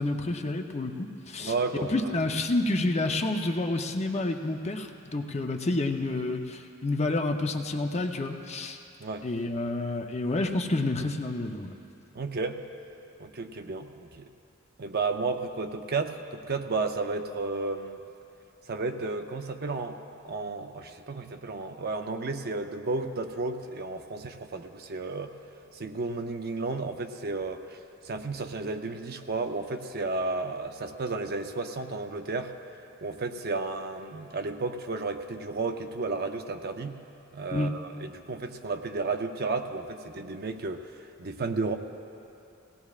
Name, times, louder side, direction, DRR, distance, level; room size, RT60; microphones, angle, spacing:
voice 1, 0.0-1.5 1.8-8.8 9.2-11.7 37.5-37.7, left 2 dB, 30° left, 4 dB, 0.7 m, -29 dB
voice 2, 1.4-2.1 9.0-9.3 12.1-12.6 13.2-14.3 14.8-18.0 18.7-25.3 25.7-27.8 28.0-32.5 33.0-37.0 37.3-41.7, right 3 dB, 50° right, 6 dB, 0.6 m, -33 dB
19.0 x 17.5 x 2.4 m, 2.7 s
head